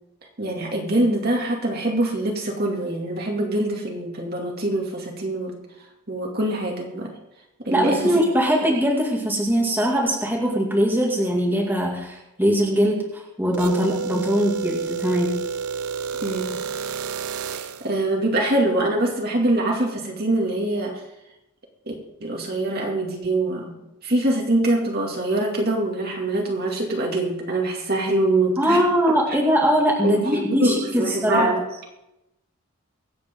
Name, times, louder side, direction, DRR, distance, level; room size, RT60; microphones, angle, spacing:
voice 1, 0.4-5.6 6.1-7.1 7.6-8.0 16.2-16.6 17.5-21.0 21.9-22.0 22.2-23.7 24.0-28.8 29.3-29.4 30.0-31.6, right 1 dB, 45° right, 0 dB, 2.4 m, -24 dB
voice 2, 7.7-15.4 28.6-31.5, equal, 10° right, -2 dB, 2.1 m, -21 dB
sound 1, 13.5-17.9, right 6 dB, 85° right, 0.7 m, -30 dB
24.0 x 8.4 x 3.8 m, 0.89 s
head